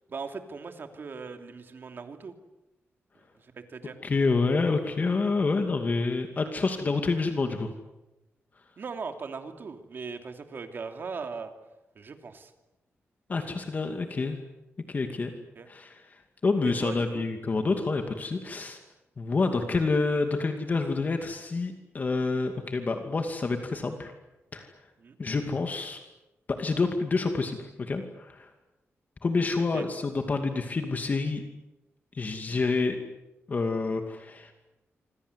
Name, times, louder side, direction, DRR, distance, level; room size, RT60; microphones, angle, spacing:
voice 1, 0.1-2.3 3.4-4.0 8.8-11.5 11.9-12.5 15.6-15.7 16.6-17.3 25.0-25.2 29.7-29.8, right 5 dB, 50° right, 6 dB, 2.9 m, -39 dB
voice 2, 4.0-7.7 13.3-14.4 14.9-15.3 15.7-18.8 19.2-24.1 24.5-24.7 25.2-26.0 26.5-28.5 29.2-31.4 32.1-33.0 33.5-34.5, left 3 dB, 35° left, 5 dB, 2.5 m, -28 dB
27.0 x 26.0 x 8.2 m, 0.98 s
wide cardioid pair, 135°, 5 cm